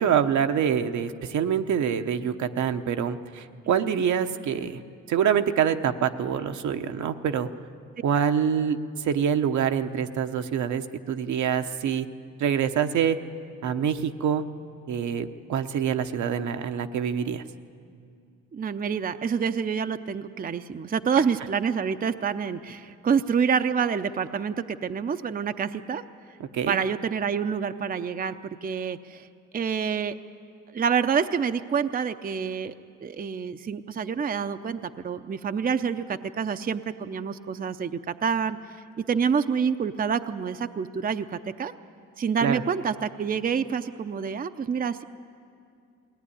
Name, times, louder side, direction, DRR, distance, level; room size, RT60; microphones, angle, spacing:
voice 1, 0.0-4.8 5.1-7.5 8.0-12.1 12.4-13.2 13.6-14.4 14.9-17.4 26.4-26.8 42.4-42.6, right 8 dB, 70° right, 7 dB, 1.0 m, -25 dB
voice 2, 18.5-26.0 26.7-28.4 28.6-29.2 29.5-30.2 30.7-32.7 33.0-38.6 39.1-41.3 41.6-41.7 42.2-45.0, right 6 dB, 30° right, 9 dB, 0.6 m, -27 dB
21.0 x 17.5 x 9.9 m, 2.4 s
cardioid pair, 90°, 30 cm